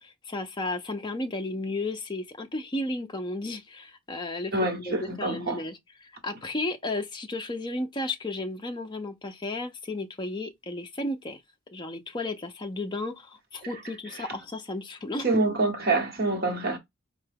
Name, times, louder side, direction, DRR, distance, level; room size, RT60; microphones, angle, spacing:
voice 1, 0.0-4.5 4.9-11.4 11.7-15.3, left 2 dB, 20° left, 0.4 m, -33 dB
voice 2, 4.5-5.6 14.2-14.3 15.2-16.8, right 2 dB, 45° right, 1.0 m, -26 dB
4.5 x 2.2 x 3.4 m
head